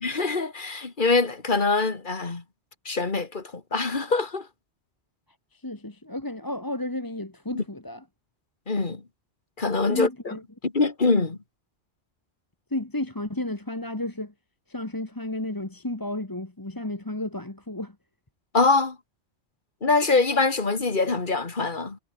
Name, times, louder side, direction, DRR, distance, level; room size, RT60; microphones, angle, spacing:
voice 1, 0.0-2.4 2.9-4.5 7.5-7.6 8.7-9.0 9.6-10.3 10.6-11.4 18.5-19.0 19.8-22.0, left 3 dB, 50° left, 2.3 m, -24 dB
voice 2, 5.5-8.0 9.9-10.4 12.7-14.3 14.7-18.0, left 1 dB, 20° left, 1.8 m, -32 dB
omnidirectional pair, 1.1 m